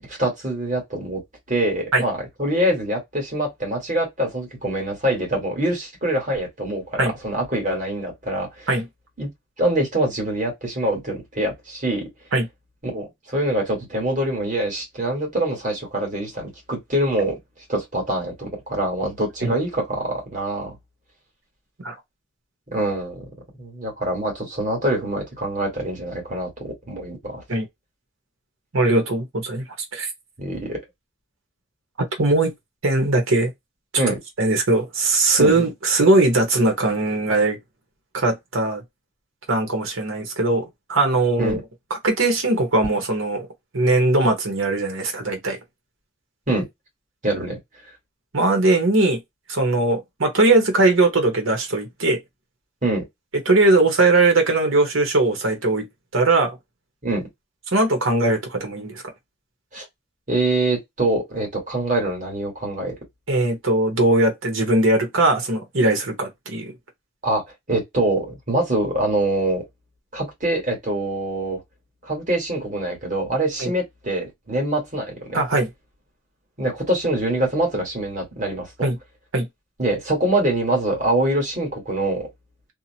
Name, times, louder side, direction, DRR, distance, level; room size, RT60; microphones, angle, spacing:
voice 1, 0.1-1.2 1.5-8.7 9.2-9.3 9.6-12.0 12.8-17.4 17.7-20.8 22.7-23.2 23.6-27.4 30.4-30.8 34.0-34.2 35.4-35.6 41.4-41.6 46.5-46.6 47.2-47.6 52.8-53.0 57.0-57.2 59.7-59.8 60.3-62.9 67.2-67.4 67.7-69.6 70.1-71.6 72.0-75.4 76.6-78.7 79.8-82.3, right 1 dB, 40° right, 1.5 m, -24 dB
voice 2, 28.7-29.6 29.9-30.1 32.2-32.5 32.8-33.5 34.4-37.6 38.1-38.8 39.5-41.6 41.9-43.5 43.7-45.6 48.3-49.2 49.5-52.2 53.5-55.9 56.1-56.6 57.7-59.0 63.3-66.7 73.6-73.7 75.3-75.7 78.8-79.0 79.3-79.5, right 2 dB, 85° right, 1.0 m, -20 dB
2.8 x 2.1 x 2.7 m
head